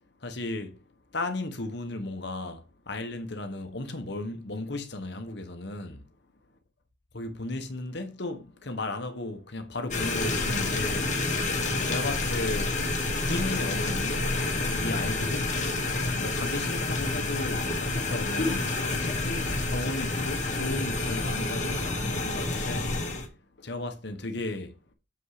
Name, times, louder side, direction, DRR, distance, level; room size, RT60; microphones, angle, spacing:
voice 1, 0.2-0.8 1.1-6.0 7.1-11.1 11.8-12.8 13.3-15.6 16.2-23.0 23.6-24.7, left 2 dB, 60° left, 1.4 m, -35 dB
sound 1, 9.9-23.3, left 2 dB, 40° left, 1.8 m, -29 dB
7.3 x 5.4 x 5.0 m
head